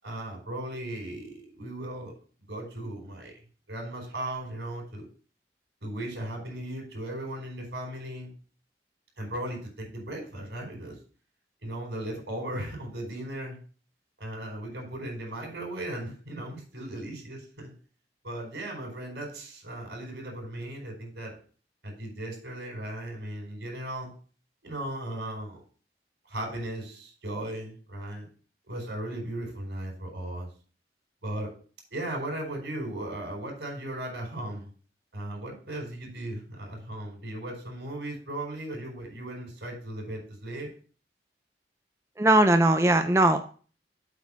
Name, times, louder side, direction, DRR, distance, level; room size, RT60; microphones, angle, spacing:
voice 1, 0.0-2.1 2.5-3.3 3.7-5.1 5.8-8.3 9.2-10.9 11.6-13.6 14.2-17.7 18.2-21.4 21.8-24.1 24.6-25.6 26.3-28.3 28.7-30.5 31.2-31.5 31.9-34.7 35.1-40.7, right 1 dB, 85° right, 1 dB, 4.7 m, -37 dB
voice 2, 42.2-43.4, right 1 dB, 15° right, 7 dB, 0.5 m, -20 dB
8.1 x 4.5 x 6.9 m, 0.41 s
head